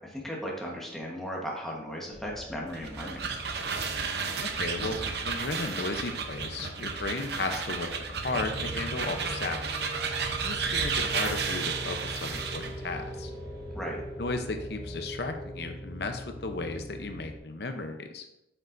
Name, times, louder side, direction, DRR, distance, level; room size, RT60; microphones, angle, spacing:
voice 1, 0.0-3.2 13.7-14.0, equal, ahead, -3 dB, 1.2 m, -36 dB
sound 1, 2.1-15.0, left 1 dB, 45° left, 1.8 m, -45 dB
sound 2, 2.7-12.8, right 5 dB, 65° right, 0.7 m, -33 dB
voice 2, 4.4-9.7 10.4-13.3 14.2-18.2, left 3 dB, 60° left, 6 dB, 0.7 m, -35 dB
sound 3, 8.2-17.4, right 1 dB, 20° left, 2.6 m, -41 dB
8.1 x 6.9 x 2.6 m, 0.84 s
head